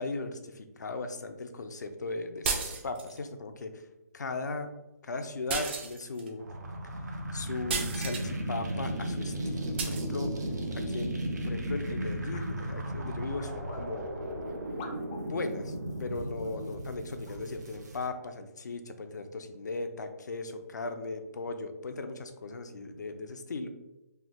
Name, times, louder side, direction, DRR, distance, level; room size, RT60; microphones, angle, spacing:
voice 1, 0.0-3.8 4.1-4.7 5.0-6.5 7.3-10.3 10.7-11.1 11.4-14.1 15.2-23.7, left 3 dB, 85° left, 7 dB, 0.5 m, -37 dB
sound 1, 2.4-3.2 5.5-6.3 7.7-8.3 9.8-10.1, right 4 dB, 40° right, 0.5 m, -33 dB
sound 2, 6.4-18.0, right 1 dB, 80° right, 0.7 m, -35 dB
sound 3, 12.3-12.5 13.4-13.8 14.8-15.3 16.4-16.5 17.2-17.4, left 4 dB, 25° left, 0.4 m, -46 dB
3.2 x 2.0 x 3.5 m, 0.96 s
hypercardioid pair, 155°, 9 cm